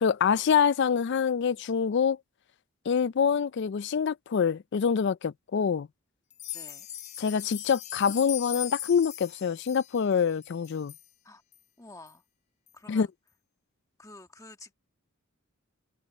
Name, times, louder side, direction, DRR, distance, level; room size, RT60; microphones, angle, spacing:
voice 1, 0.0-2.2 2.9-5.9 7.2-10.9 12.9-13.1, left 6 dB, 50° left, 0.3 m, -25 dB
sound 1, 6.3-11.1 11.5-11.6 12.1-12.2 12.7-12.8, left 11 dB, 35° left, 0.7 m, -39 dB
voice 2, 6.5-6.9 11.2-11.4 11.8-12.2 12.7-13.1 14.0-14.7, left 2 dB, 15° left, 1.4 m, -49 dB
head